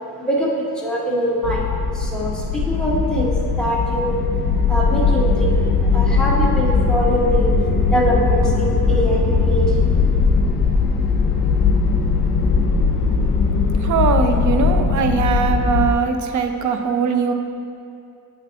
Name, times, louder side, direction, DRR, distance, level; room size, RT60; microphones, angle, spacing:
voice 1, 0.8-1.7 1.9-4.2 4.7-5.6 5.9-7.5 7.9-9.7, right 1 dB, ahead, -5 dB, 1.1 m, -23 dB
sound 1, 1.4-15.9, left 4 dB, 60° left, 0.8 m, -19 dB
voice 2, 13.8-17.3, right 6 dB, 50° right, 6 dB, 0.5 m, -20 dB
9.1 x 6.0 x 2.9 m, 2.6 s
wide cardioid pair, 140°, 39 cm